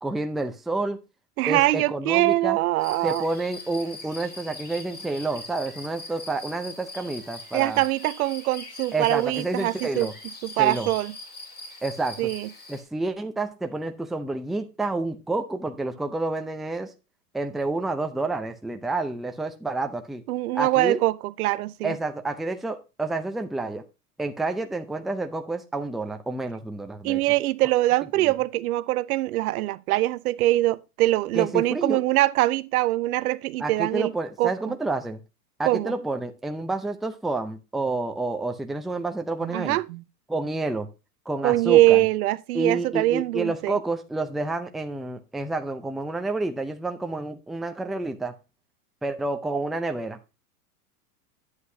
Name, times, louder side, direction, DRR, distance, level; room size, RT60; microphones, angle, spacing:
voice 1, 0.0-1.0 1.5-2.6 3.0-7.8 8.9-10.1 10.6-10.9 11.8-12.2 12.7-16.9 17.3-20.2 20.5-21.0 21.8-23.8 24.2-27.2 28.2-28.3 31.3-32.0 33.6-35.2 35.6-39.8 40.3-40.9 41.3-42.0 42.5-48.3 49.0-50.2, right 2 dB, ahead, 0.5 m, -29 dB
voice 2, 1.4-3.2 7.5-10.1 10.4-11.1 12.2-12.5 20.3-21.9 27.0-34.1 34.4-34.5 35.6-35.9 39.4-40.0 41.4-43.8, right 16 dB, 70° right, 0.7 m, -23 dB
sound 1, 2.8-12.8, left 2 dB, 20° left, 3.2 m, -42 dB
9.7 x 8.1 x 2.7 m
hypercardioid pair, 115°, 45 cm